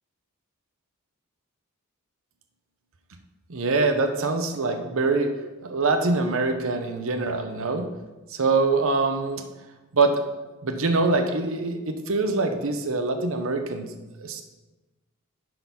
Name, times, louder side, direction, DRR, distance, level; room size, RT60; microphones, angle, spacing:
voice 1, 3.5-5.3 5.6-7.9 8.3-9.4 9.9-10.2 10.6-13.9 14.2-14.4, right 3 dB, 65° right, 6 dB, 0.7 m, -24 dB
10.0 x 3.9 x 5.6 m, 1.2 s
head